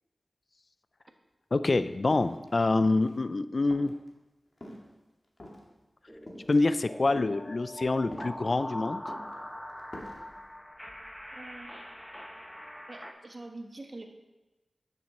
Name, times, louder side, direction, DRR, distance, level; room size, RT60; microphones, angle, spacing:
voice 1, 1.5-3.9 6.5-9.0, left 3 dB, 55° left, 12 dB, 0.4 m, -26 dB
sound 1, 1.8-1.9 2.1-3.2 3.7-4.1 4.6-4.9 5.4-5.7 6.3-6.6 7.1-7.3 8.1-8.7 9.1-9.3 9.8-10.2, left 1 dB, 40° left, 1.9 m, -44 dB
sound 2, 6.1-13.1, left 1 dB, 5° left, 1.1 m, -43 dB
voice 2, 11.3-11.7 12.9-14.0, right 2 dB, 45° right, 4 dB, 1.1 m, -45 dB
9.6 x 6.2 x 4.2 m, 1.1 s
cardioid pair, 45°, 0 cm